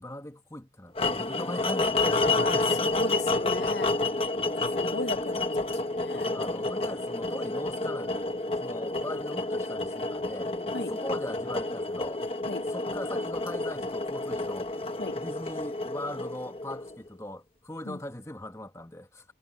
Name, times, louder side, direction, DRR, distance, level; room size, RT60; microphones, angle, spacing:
voice 1, 0.0-2.8 6.1-12.2 12.7-19.3, left 1 dB, 15° left, 1.5 m, -40 dB
sound 1, 1.0-17.1, left 2 dB, 30° left, 1.2 m, -30 dB
voice 2, 2.0-3.9 4.7-6.4 10.7-10.9 12.5-12.6 15.0-15.2 17.9-18.0, left 3 dB, 75° left, 0.9 m, -36 dB
head